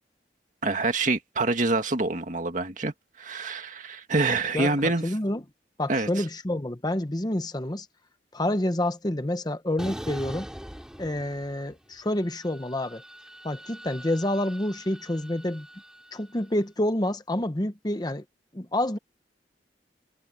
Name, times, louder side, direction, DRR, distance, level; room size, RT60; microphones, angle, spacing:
voice 1, 0.6-5.0 5.9-6.2, right 3 dB, 45° right, 2.0 m, -26 dB
voice 2, 4.5-5.4 5.8-7.9 8.3-10.5 11.0-13.0 13.4-15.7 16.1-18.2 18.5-19.0, left 1 dB, 25° left, 1.0 m, -28 dB
sound 1, 9.8-11.7 12.1-16.4, equal, 5° right, 4.3 m, -43 dB
head